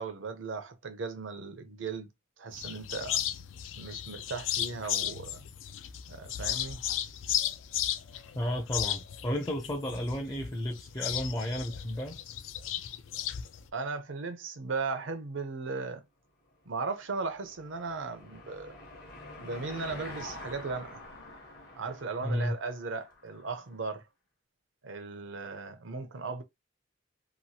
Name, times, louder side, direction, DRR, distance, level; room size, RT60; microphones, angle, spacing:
voice 1, 0.0-2.1 2.4-3.2 3.8-5.4 6.1-6.8 13.7-16.0 16.7-18.8 19.4-21.0 21.8-24.0 24.8-26.4, right 4 dB, 80° right, 0.7 m, -37 dB
sound 1, 2.5-13.7, left 11 dB, 80° left, 0.4 m, -35 dB
voice 2, 8.3-12.2 22.2-22.5, equal, 20° left, 0.5 m, -32 dB
Car passing by / Engine, 16.7-23.6, left 2 dB, 55° left, 0.9 m, -47 dB
3.0 x 2.3 x 2.7 m
head